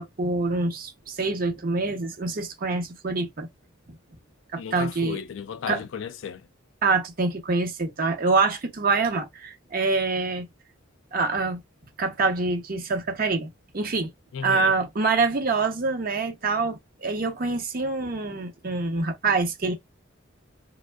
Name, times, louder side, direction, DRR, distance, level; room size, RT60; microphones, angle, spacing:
voice 1, 0.0-3.5 4.5-5.2 5.7-5.8 6.8-10.5 11.1-11.6 12.0-13.5 13.7-14.1 14.4-19.7, right 3 dB, 45° right, 0.7 m, -25 dB
voice 2, 4.6-6.4 14.3-14.7, left 7 dB, 60° left, 0.3 m, -34 dB
3.4 x 2.0 x 2.2 m
head